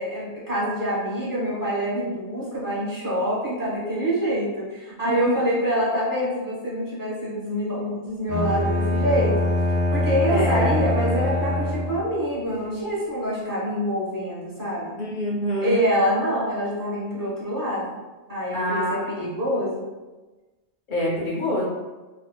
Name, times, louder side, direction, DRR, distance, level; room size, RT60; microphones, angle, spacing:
voice 1, 0.0-9.5 9.9-15.0 15.6-18.0 18.3-19.8, equal, 25° right, -7 dB, 0.5 m, -26 dB
Bowed string instrument, 8.3-12.2, left 2 dB, 60° right, 0.9 m, -24 dB
voice 2, 10.3-10.7 15.0-15.8 18.5-19.3 20.9-21.7, equal, 55° left, -5 dB, 0.7 m, -26 dB
2.5 x 2.3 x 2.2 m, 1.2 s
omnidirectional pair, 1.2 m